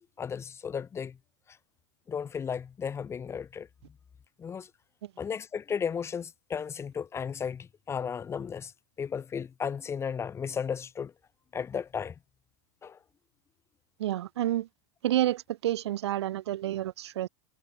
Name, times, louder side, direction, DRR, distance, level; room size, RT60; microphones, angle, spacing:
voice 1, 0.2-1.2 1.5-1.6 2.1-3.7 4.4-4.7 5.2-8.7 9.0-11.1 11.5-12.1 12.8-13.0, left 7 dB, 20° left, 4.8 m, -34 dB
voice 2, 14.0-14.7 15.0-17.3, right 13 dB, 80° right, 4.8 m, -29 dB
supercardioid pair, 140°, 14 cm